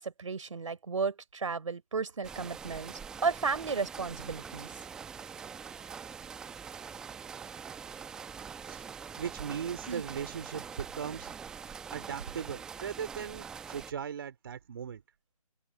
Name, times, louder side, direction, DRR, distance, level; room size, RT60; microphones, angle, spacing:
voice 1, 0.0-4.8 9.9-10.0, right 5 dB, 50° right, 4.1 m, -34 dB
sound 1, 2.2-13.9, right 6 dB, 5° right, 0.9 m, -44 dB
voice 2, 9.2-11.5 11.9-15.0, right 7 dB, 35° right, 3.1 m, -38 dB
open air
figure-of-eight pair, 155°, 20 cm